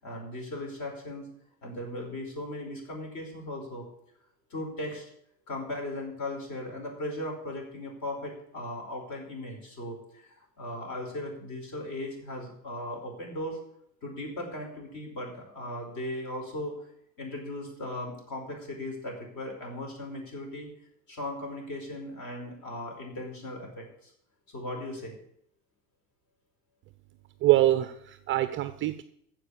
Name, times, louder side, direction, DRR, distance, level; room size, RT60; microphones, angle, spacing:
voice 1, 0.0-1.2 1.6-3.8 4.5-5.1 5.5-13.6 14.0-16.7 17.2-20.7 21.1-24.1 24.5-25.2, left 1 dB, 40° left, 1 dB, 5.0 m, -37 dB
voice 2, 27.4-29.0, right 15 dB, 25° right, 11 dB, 0.5 m, -24 dB
15.0 x 5.1 x 8.4 m, 0.70 s
figure-of-eight pair, 80°, 48 cm